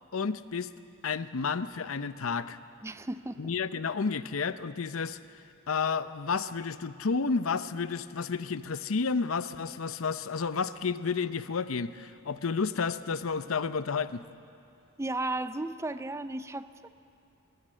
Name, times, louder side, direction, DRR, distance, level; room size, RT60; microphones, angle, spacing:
voice 1, 0.1-0.7 1.0-2.6 3.4-5.2 5.7-14.2, left 5 dB, 90° left, 13 dB, 0.7 m, -31 dB
voice 2, 2.8-3.5 15.0-16.9, right 2 dB, 15° right, 12 dB, 0.5 m, -35 dB
20.5 x 19.0 x 7.6 m, 2.6 s
head